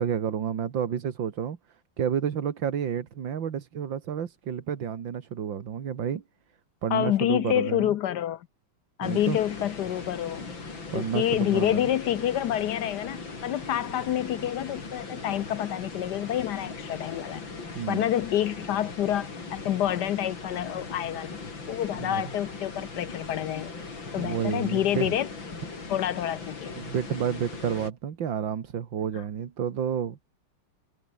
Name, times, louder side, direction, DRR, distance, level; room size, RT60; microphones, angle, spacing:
voice 1, 0.0-1.6 2.0-6.2 6.8-7.9 9.0-9.4 10.9-11.8 17.8-18.0 22.0-22.3 24.2-25.2 26.8-30.2, right 8 dB, 80° right, 2.4 m, -30 dB
voice 2, 6.9-8.5 9.0-10.5 10.9-17.4 17.9-21.4 21.7-23.7 24.1-25.3 25.9-26.7, left 11 dB, 70° left, 1.2 m, -28 dB
sound 1, 9.0-27.9, left 4 dB, 85° left, 5.0 m, -39 dB
omnidirectional pair, 2.0 m